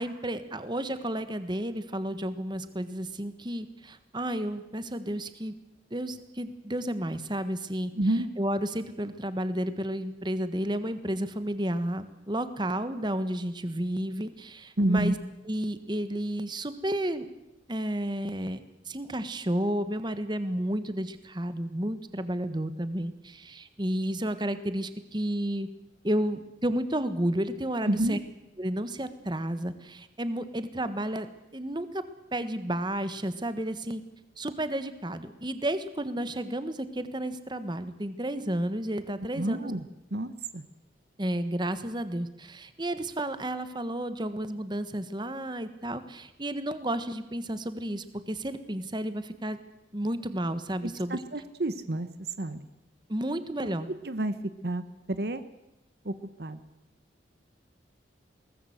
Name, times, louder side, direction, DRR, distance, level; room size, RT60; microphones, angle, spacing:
voice 1, 0.0-5.5 5.9-7.9 8.4-15.1 15.4-17.2 17.7-18.6 18.8-25.7 26.0-28.2 28.6-31.3 31.5-32.0 32.3-34.0 34.4-39.7 41.2-49.6 49.9-51.2 53.1-53.9, right 1 dB, 25° right, 11 dB, 1.4 m, -32 dB
voice 2, 8.0-8.3 14.8-15.1 27.9-28.2 39.4-39.8 40.1-40.6 50.8-52.1 52.4-52.6 54.0-54.3 54.6-54.8 55.1-55.4 56.0-56.1 56.4-56.6, right 1 dB, 60° right, 12 dB, 1.0 m, -29 dB
22.0 x 19.0 x 8.0 m, 0.91 s
head